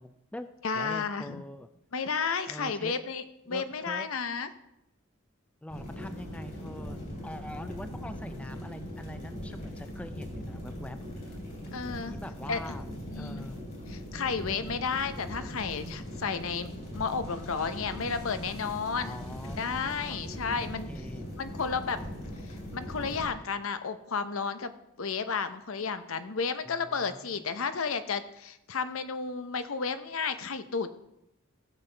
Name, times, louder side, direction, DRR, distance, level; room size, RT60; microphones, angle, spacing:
voice 1, 0.0-1.7 2.5-2.9 3.5-4.1 5.6-11.4 12.1-12.9 13.1-13.6 19.0-21.3 26.7-27.6, left 1 dB, 5° left, 10 dB, 0.3 m, -44 dB
voice 2, 0.6-1.4 1.9-4.5 11.7-12.2 12.5-12.6 13.1-13.4 13.9-16.7 16.9-19.3 19.6-20.9 21.4-22.0 22.5-24.7 25.0-30.9, left 5 dB, 80° left, 11 dB, 0.7 m, -32 dB
sound 1, 5.7-23.3, equal, 45° left, 3.5 m, -40 dB
15.5 x 7.2 x 3.4 m, 0.85 s
head